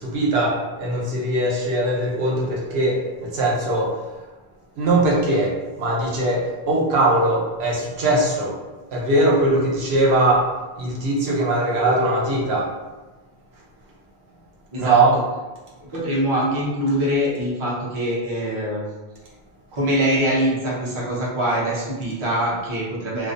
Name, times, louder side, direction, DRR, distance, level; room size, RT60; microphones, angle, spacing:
voice 1, 0.0-3.9 4.8-8.6 8.9-10.5 10.8-12.8 14.8-15.1, right 2 dB, 75° right, -4 dB, 0.8 m, -20 dB
voice 2, 14.7-15.0 15.8-18.8 19.7-23.3, equal, 35° right, -6 dB, 0.6 m, -23 dB
2.5 x 2.1 x 2.5 m, 1.2 s
omnidirectional pair, 1.1 m